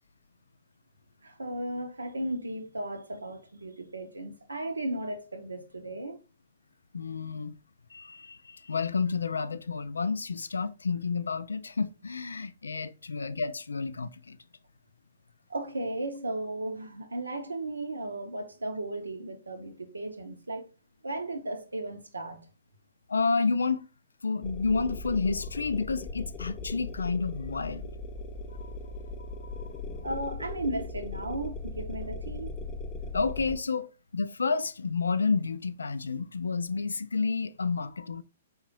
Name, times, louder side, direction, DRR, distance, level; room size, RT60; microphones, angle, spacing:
voice 1, 1.2-6.2 15.5-20.6 21.0-22.5 30.0-32.5, right 1 dB, 80° right, 0.7 m, -35 dB
voice 2, 6.9-7.6 7.9-14.4 23.1-23.8 24.2-27.9 28.6-28.8 29.2-29.7 33.1-38.2, left 4 dB, 70° left, 0.3 m, -30 dB
sound 1, 24.4-33.6, left 3 dB, 20° left, 0.6 m, -39 dB
4.8 x 3.6 x 3.0 m
figure-of-eight pair, 115°, 0 cm